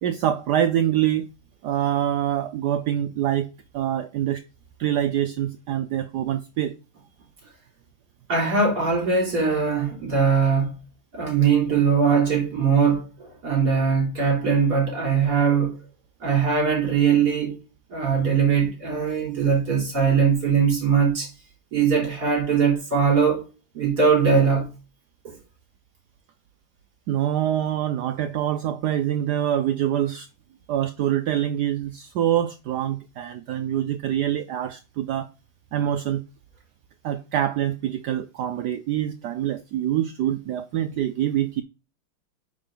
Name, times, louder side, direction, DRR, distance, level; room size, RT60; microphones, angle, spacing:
voice 1, 0.0-1.3 1.6-4.4 4.8-6.8 27.1-30.3 30.7-35.3 35.7-36.2 37.0-41.6, right 11 dB, 85° right, 0.9 m, -25 dB
voice 2, 8.3-10.7 11.1-15.8 16.2-17.6 17.9-21.3 21.7-23.4 23.7-24.7 25.2-25.4, right 6 dB, 45° right, 4.2 m, -21 dB
8.8 x 4.8 x 3.8 m
omnidirectional pair, 2.4 m